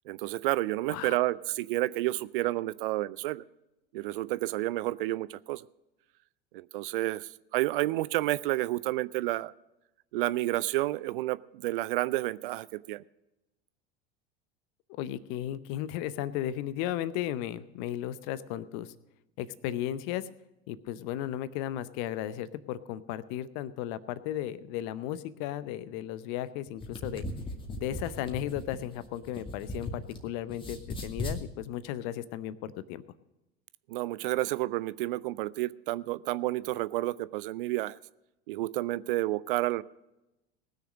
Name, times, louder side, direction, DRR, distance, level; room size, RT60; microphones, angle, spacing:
voice 1, 0.1-3.4 3.9-5.6 6.5-9.5 10.1-13.0 33.9-38.0 38.5-39.8, right 17 dB, 55° right, 18 dB, 0.5 m, -30 dB
voice 2, 0.9-1.3 14.9-18.9 19.4-20.3 20.7-27.2 27.8-33.0, left 12 dB, 45° left, 16 dB, 0.7 m, -35 dB
sound 1, 26.7-30.2 30.5-31.4, left 2 dB, 15° left, 2.1 m, -38 dB
19.5 x 6.6 x 6.3 m, 0.95 s
figure-of-eight pair, 75°, 33 cm